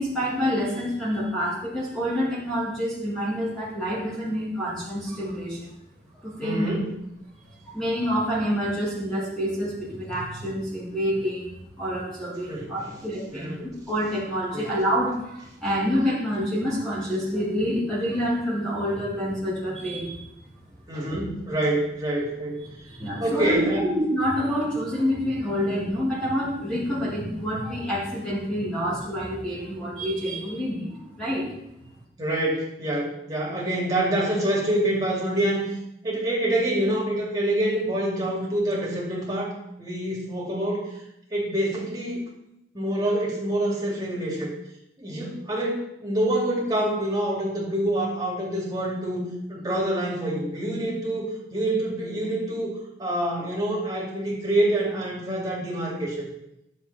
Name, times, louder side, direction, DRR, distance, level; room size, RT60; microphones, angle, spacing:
voice 1, 0.0-5.7 6.2-6.8 7.6-20.3 23.0-23.6 23.8-31.5, equal, 5° left, -8 dB, 2.2 m, -27 dB
voice 2, 6.4-6.9 12.5-12.9 13.3-13.5 14.5-14.6 20.9-22.5 23.2-23.8 32.2-35.6 36.0-39.5 39.8-40.8 41.3-42.2 42.7-44.5 45.0-52.7 53.0-56.3, right 1 dB, 20° right, -4 dB, 2.7 m, -26 dB
11.5 x 7.0 x 4.3 m, 0.83 s
head